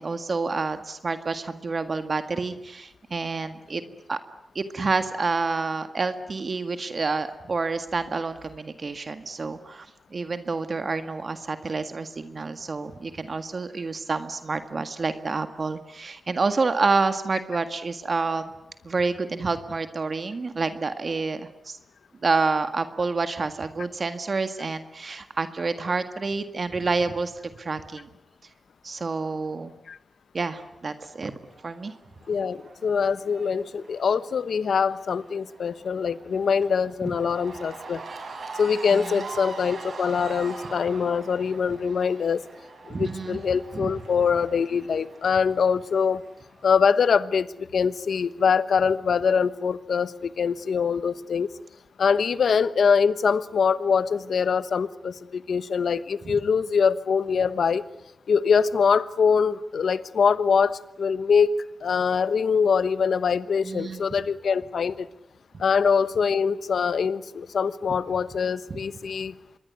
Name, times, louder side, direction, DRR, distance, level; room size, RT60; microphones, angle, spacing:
voice 1, 0.0-3.8 4.1-4.2 4.6-18.5 18.8-21.8 22.2-28.1 28.8-29.7 30.3-31.4 31.6-31.9 37.1-37.2 38.9-39.2 42.9-43.4 43.7-43.9 63.6-64.0 68.7-68.8, right 4 dB, 50° right, 9 dB, 1.8 m, -28 dB
Cheering / Crowd, 31.5-46.8, right 4 dB, 70° right, 6.1 m, -43 dB
voice 2, 32.3-38.0 38.5-42.4 42.9-46.2 46.6-51.5 52.0-57.8 58.3-61.5 61.8-65.1 65.6-69.3, left 6 dB, 80° left, 15 dB, 1.1 m, -23 dB
26.5 x 21.5 x 9.5 m, 0.83 s
wide cardioid pair, 90°, 0 cm